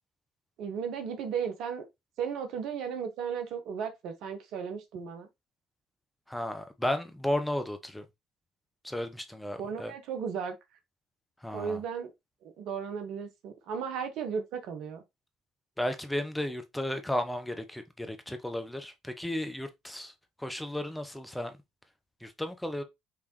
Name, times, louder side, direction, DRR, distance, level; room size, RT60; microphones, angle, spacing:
voice 1, 0.6-1.8 2.2-5.3 9.6-10.5 11.5-12.1 12.4-15.0, right 7 dB, 65° right, 1.0 m, -35 dB
voice 2, 6.3-8.0 8.8-9.9 11.4-11.8 15.8-20.1 20.4-21.5 22.2-22.8, left 1 dB, 5° left, 0.9 m, -34 dB
5.0 x 3.4 x 3.0 m
hypercardioid pair, 60°, 0 cm